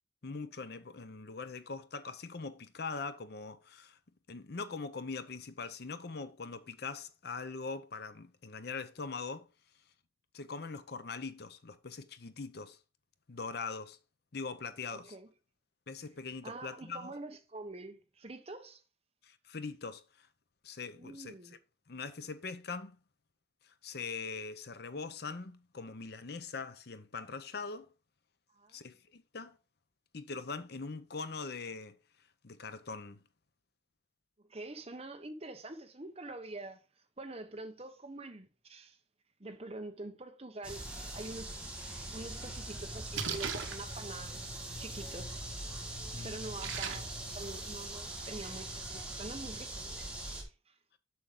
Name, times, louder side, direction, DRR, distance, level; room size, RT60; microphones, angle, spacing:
voice 1, 0.2-4.0 4.3-9.5 10.3-12.8 13.3-14.0 14.3-15.2 15.9-17.1 19.2-20.3 20.6-21.4 21.9-23.0 23.6-27.9 28.7-29.6 30.1-32.0 32.4-33.2 46.1-46.4, left 4 dB, 55° left, 0.7 m, -42 dB
voice 2, 14.9-15.3 16.4-18.8 21.0-21.6 28.5-28.9 34.5-36.8 37.2-39.0 39.4-40.8 41.1-41.5 42.1-45.4 45.9-49.8 50.3-50.7, right 2 dB, 30° right, 1.0 m, -46 dB
sound 1, 40.6-50.4, right 1 dB, 5° right, 1.6 m, -42 dB
Splash splatter, 42.4-47.4, right 5 dB, 80° right, 1.1 m, -42 dB
7.1 x 6.3 x 3.7 m
head